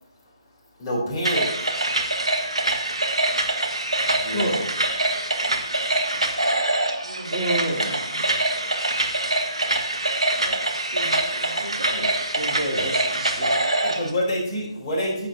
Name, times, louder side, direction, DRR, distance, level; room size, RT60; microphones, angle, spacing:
voice 1, 0.8-1.7 4.2-4.6 13.8-15.3, equal, 25° left, -4 dB, 3.7 m, -27 dB
sound 1, 1.2-14.1, right 2 dB, 75° right, 1.6 m, -24 dB
voice 2, 4.3-4.6 7.3-8.0 12.0-12.1 12.3-13.5, right 1 dB, ahead, -12 dB, 3.4 m, -28 dB
voice 3, 7.0-8.3 10.4-12.1, right 2 dB, 60° right, -1 dB, 2.7 m, -39 dB
14.5 x 8.1 x 2.9 m, 0.80 s
figure-of-eight pair, 145°, 3 cm